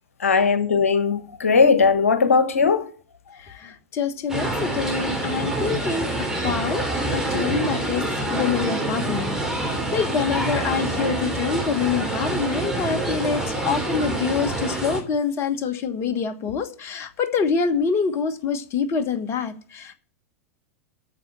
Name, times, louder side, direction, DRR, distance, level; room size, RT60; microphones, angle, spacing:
voice 1, 0.2-2.9, left 5 dB, 75° left, 1.3 m, -18 dB
voice 2, 3.4-19.9, left 6 dB, 35° left, 1.4 m, -26 dB
sound 1, 4.3-15.0, right 2 dB, 5° right, 3.4 m, -26 dB
9.1 x 6.6 x 8.6 m
figure-of-eight pair, 90°, 8 cm